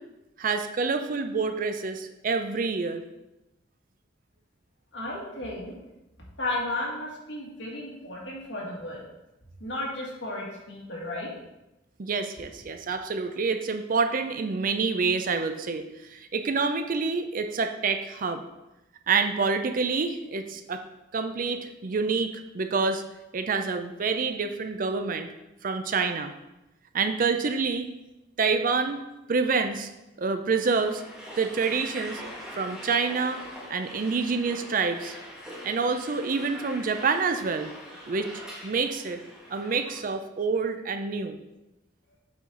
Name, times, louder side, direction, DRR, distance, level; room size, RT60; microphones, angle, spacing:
voice 1, 0.4-3.0 12.0-15.9 16.1-18.4 19.1-20.8 21.1-23.0 23.3-25.3 25.6-26.3 26.9-27.9 28.4-29.9 30.2-31.0 31.4-32.2 32.6-33.4 33.7-35.1 35.6-37.7 38.1-38.3 38.6-39.2 39.5-41.4, right 4 dB, 50° right, 8 dB, 0.5 m, -27 dB
voice 2, 4.9-5.7 6.4-9.0 9.6-11.3, left 1 dB, 70° left, -4 dB, 2.0 m, -34 dB
sound 1, 30.6-40.0, equal, 5° right, 1.3 m, -43 dB
7.8 x 4.2 x 3.9 m, 0.96 s
head